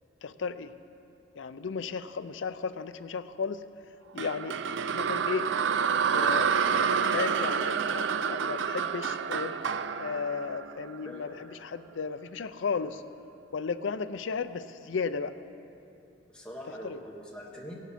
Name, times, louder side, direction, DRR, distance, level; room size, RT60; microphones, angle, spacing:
voice 1, 0.2-0.7 1.4-3.6 4.1-4.6 4.9-5.5 6.1-6.5 7.1-9.5 10.0-13.0 13.5-15.3 16.8-17.0, left 5 dB, 75° left, 12 dB, 0.5 m, -34 dB
sound 1, 4.2-11.3, right 6 dB, 65° right, 0.4 m, -28 dB
voice 2, 11.0-11.5 16.3-17.8, equal, 5° left, -3 dB, 1.5 m, -43 dB
16.5 x 11.5 x 4.2 m, 2.8 s
head